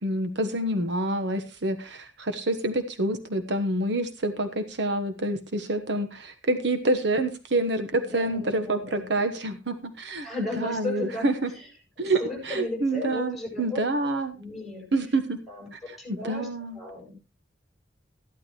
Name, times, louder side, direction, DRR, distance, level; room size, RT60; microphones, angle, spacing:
voice 1, 0.0-11.5 12.0-14.4 14.9-15.4 15.7-16.8, right 2 dB, 70° right, 8 dB, 1.3 m, -27 dB
voice 2, 8.1-9.3 10.2-11.7 12.0-13.8 14.4-14.9 15.5-15.7 16.0-17.1, left 2 dB, ahead, -1 dB, 7.8 m, -35 dB
14.5 x 12.0 x 3.1 m, 0.30 s
head